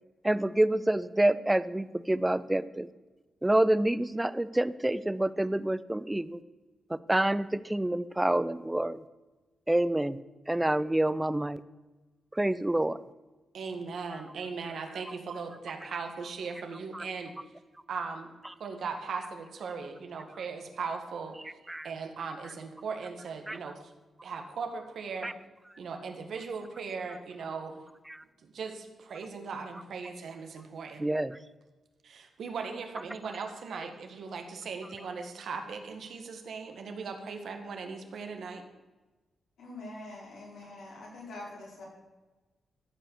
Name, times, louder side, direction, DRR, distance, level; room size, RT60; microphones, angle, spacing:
voice 1, 0.2-2.9 3.4-6.4 6.9-9.0 9.7-10.2 10.5-11.6 12.3-13.0 16.9-17.0 21.7-21.9 23.5-23.6 25.2-25.3 28.1-28.2 31.0-31.3, right 1 dB, 10° right, 16 dB, 0.4 m, -27 dB
voice 2, 13.5-17.3 17.9-18.3 18.6-23.9 24.2-25.3 25.8-27.8 28.4-31.1 32.0-38.6, right 5 dB, 70° right, 5 dB, 1.6 m, -38 dB
voice 3, 39.6-41.8, left 2 dB, 85° left, -4 dB, 4.9 m, -44 dB
14.0 x 5.7 x 7.1 m, 1.2 s
cardioid pair, 110°, 0 cm